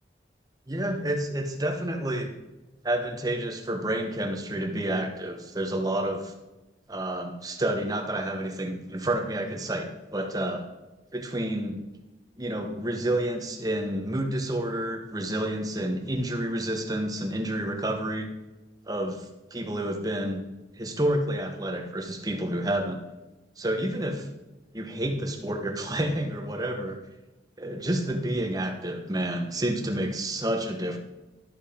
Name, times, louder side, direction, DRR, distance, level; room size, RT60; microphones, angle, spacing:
voice 1, 0.7-2.3 2.8-6.3 6.9-10.7 11.1-11.8 12.4-18.3 18.9-20.4 20.8-23.0 23.6-24.3 24.7-27.0 27.6-31.0, right 1 dB, 20° right, 3 dB, 1.1 m, -29 dB
12.0 x 5.5 x 5.1 m, 1.1 s
head